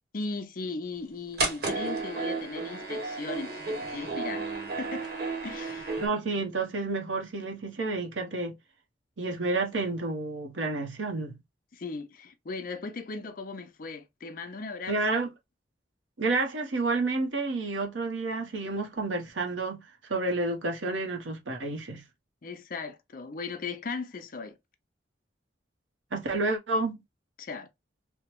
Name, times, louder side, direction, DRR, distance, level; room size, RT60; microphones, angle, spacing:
voice 1, 0.1-4.5 4.8-5.1 5.4-6.0 11.7-15.2 22.4-24.6 27.4-27.7, left 4 dB, 50° left, 0.5 m, -37 dB
sound 1, 1.4-6.1, right 3 dB, 55° right, 1.0 m, -33 dB
voice 2, 6.0-8.6 9.2-11.4 14.9-15.3 16.2-19.8 20.1-22.0 26.1-27.0, right 3 dB, 90° right, 0.8 m, -30 dB
3.4 x 2.0 x 2.9 m
head